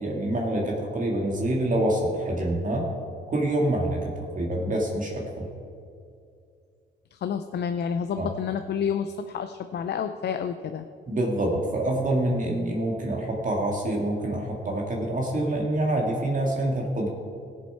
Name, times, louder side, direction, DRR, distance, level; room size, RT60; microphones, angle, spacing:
voice 1, 0.0-2.9 3.3-5.5 8.2-8.3 11.1-17.1, right 1 dB, 40° right, -1 dB, 2.0 m, -26 dB
voice 2, 7.1-10.9, left 7 dB, 55° left, 8 dB, 0.6 m, -29 dB
16.0 x 7.3 x 4.7 m, 2.4 s
cardioid pair, 90°, 20 cm